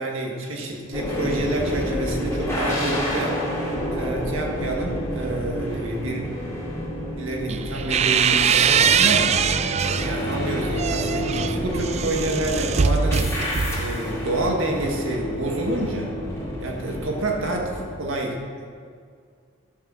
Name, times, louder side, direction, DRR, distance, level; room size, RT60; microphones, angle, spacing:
voice 1, 0.0-3.4 3.9-6.2 7.2-9.4 9.8-13.3 13.8-16.1 16.6-18.6, right 1 dB, 70° right, 0 dB, 1.9 m, -28 dB
sound 1, 0.9-17.8, equal, 15° left, 2.8 m, -29 dB
sound 2, 7.5-10.2 10.6-14.0, right 7 dB, 30° right, 0.3 m, -22 dB
12.0 x 6.8 x 6.5 m, 2.2 s
head